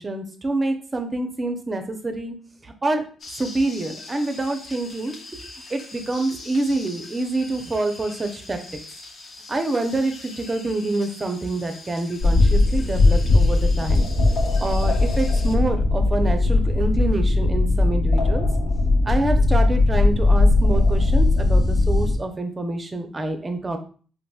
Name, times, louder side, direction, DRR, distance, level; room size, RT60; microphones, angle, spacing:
voice 1, 0.0-2.3 2.6-3.0 3.3-5.2 5.7-8.6 9.5-14.1 14.6-18.5 19.0-23.8, right 2 dB, 25° right, 6 dB, 0.6 m, -26 dB
sound 1, 3.2-15.5, left 3 dB, 55° left, 0.6 m, -42 dB
sound 2, 12.2-22.1, left 2 dB, 75° left, 1.2 m, -18 dB
4.1 x 2.6 x 2.3 m, 0.41 s
cardioid pair, 90°, 0 cm